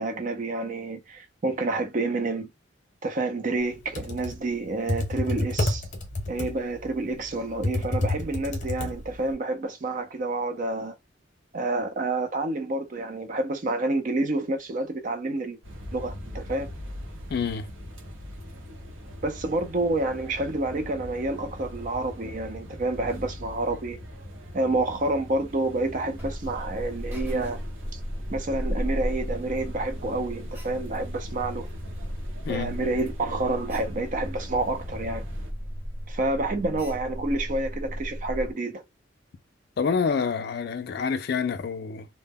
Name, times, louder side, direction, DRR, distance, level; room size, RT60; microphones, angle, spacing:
voice 1, 0.0-2.5 3.0-5.9 6.3-10.9 11.5-15.6 15.9-16.7 19.2-24.0 24.5-27.6 27.9-28.0 28.3-31.7 32.5-35.2 36.1-38.8, right 2 dB, 40° right, 0.4 m, -29 dB
Computer keyboard, 3.7-9.3, left 2 dB, 40° left, 0.7 m, -29 dB
sound 1, 15.6-35.5, left 1 dB, 80° right, 0.8 m, -42 dB
voice 2, 17.3-17.7 32.5-32.8 39.8-42.1, left 5 dB, 55° left, 0.3 m, -27 dB
Alarm, 26.2-38.5, equal, 10° right, 0.7 m, -35 dB
2.1 x 2.1 x 3.4 m
head